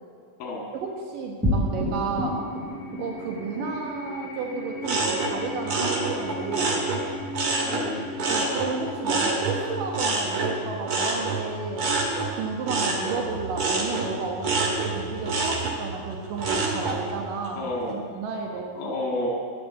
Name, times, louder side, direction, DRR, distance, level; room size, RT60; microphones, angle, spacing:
voice 1, 0.8-2.4 3.0-6.8 8.3-11.9 12.3-18.9, right 4 dB, 70° right, 1 dB, 2.8 m, -32 dB
sound 1, 1.4-12.1, left 1 dB, 5° right, 1.6 m, -34 dB
sound 2, 4.8-7.9 8.2-17.0 17.4-17.9, right 3 dB, 45° right, 2.4 m, -27 dB
voice 2, 7.5-8.2 17.6-18.0 18.8-19.3, left 1 dB, 90° left, -1 dB, 3.9 m, -31 dB
11.5 x 11.0 x 8.4 m, 2.2 s
omnidirectional pair, 4.1 m